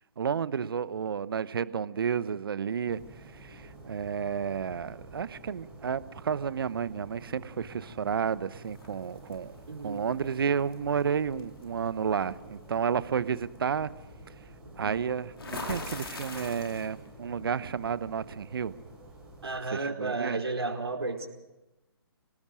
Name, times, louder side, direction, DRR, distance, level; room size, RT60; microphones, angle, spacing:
voice 1, 0.2-3.0 3.4-9.6 9.8-13.9 14.8-18.7 19.7-20.4, right 7 dB, 60° right, 1.0 m, -31 dB
sound 1, 2.9-19.6, right 1 dB, 5° right, 6.3 m, -50 dB
sound 2, 8.7-9.4 10.7-10.9 11.4-11.6 15.4-17.1, left 2 dB, 70° left, 4.7 m, -39 dB
voice 2, 9.7-10.0 14.6-15.0 19.4-21.3, right 3 dB, 80° right, 4.7 m, -33 dB
27.0 x 19.0 x 6.3 m
figure-of-eight pair, 135°, 13 cm